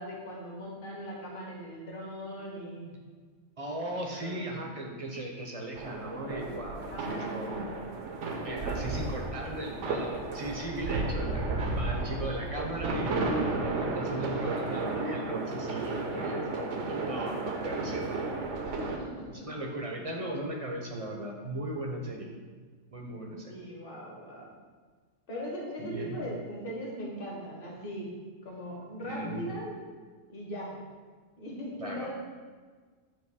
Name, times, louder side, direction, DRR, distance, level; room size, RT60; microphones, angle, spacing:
voice 1, 0.0-2.9 4.1-4.6 6.9-7.8 11.7-12.1 18.7-19.5 23.1-24.4 25.3-28.1 28.4-29.7 30.3-30.8 31.4-32.1, equal, 45° left, -3 dB, 1.5 m, -40 dB
voice 2, 3.6-7.5 8.4-18.0 19.3-22.3 22.9-23.5 25.8-26.2 29.0-29.5 31.8-32.1, right 1 dB, 35° right, 0 dB, 0.7 m, -37 dB
sound 1, 5.8-19.0, right 3 dB, 70° right, 1.0 m, -33 dB
7.5 x 3.0 x 4.8 m, 1.5 s
omnidirectional pair, 1.3 m